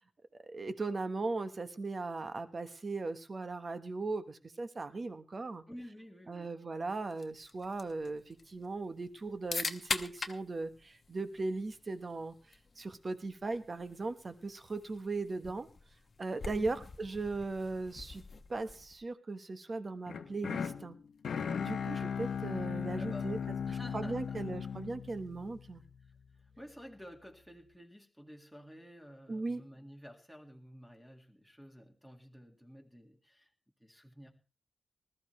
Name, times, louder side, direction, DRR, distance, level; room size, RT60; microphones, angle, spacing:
voice 1, 0.4-5.6 6.3-12.3 12.8-15.7 16.2-18.2 18.5-21.0 21.6-23.4 23.7-25.8 29.3-29.6, right 3 dB, 30° right, 10 dB, 1.1 m, -38 dB
voice 2, 5.7-6.5 16.5-16.8 23.0-24.4 26.0-26.1 26.6-33.5 33.8-34.3, equal, ahead, 4 dB, 1.9 m, -52 dB
sound 1, 7.1-19.0, left 4 dB, 35° left, 1.0 m, -44 dB
sound 2, 20.1-26.2, left 7 dB, 70° left, 1.0 m, -37 dB
20.0 x 13.0 x 3.2 m, 0.33 s
wide cardioid pair, 170°, 0 cm